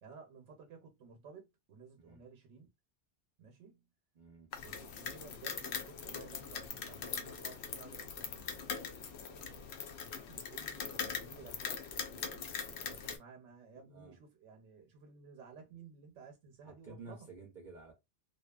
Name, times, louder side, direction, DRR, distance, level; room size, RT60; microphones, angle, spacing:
voice 1, 0.0-2.7 3.4-3.9 4.6-8.9 9.2-11.8 12.1-17.3, right 5 dB, 85° right, 1.0 m, -55 dB
voice 2, 4.1-4.5 12.9-13.2 13.8-14.2 16.6-17.9, right 3 dB, 50° right, 0.6 m, -52 dB
sound 1, 4.5-13.2, left 6 dB, 70° left, 0.8 m, -42 dB
2.7 x 2.3 x 2.2 m
omnidirectional pair, 1.2 m